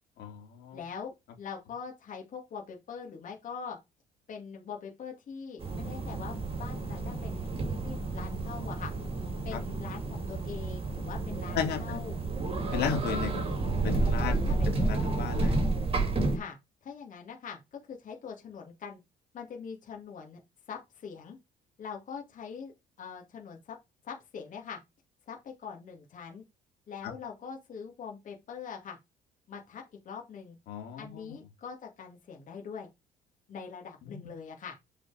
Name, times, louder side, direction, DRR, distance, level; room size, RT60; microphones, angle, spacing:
voice 1, 0.2-0.8 9.5-9.6 11.5-12.0 12.7-14.4 14.7-15.6 30.7-31.3 34.0-34.3, left 8 dB, 75° left, 3.2 m, -35 dB
voice 2, 0.7-3.8 4.3-8.9 9.4-12.2 14.2-14.8 16.3-19.0 19.3-20.4 20.7-21.4 21.8-22.7 23.0-23.8 24.0-24.8 25.3-26.4 26.9-29.0 29.5-30.6 31.0-32.9 33.5-34.8, left 6 dB, 50° left, 2.6 m, -43 dB
sound 1, 5.6-16.4, right 3 dB, 35° right, 3.3 m, -31 dB
8.5 x 5.0 x 5.0 m
cardioid pair, 110°, 17 cm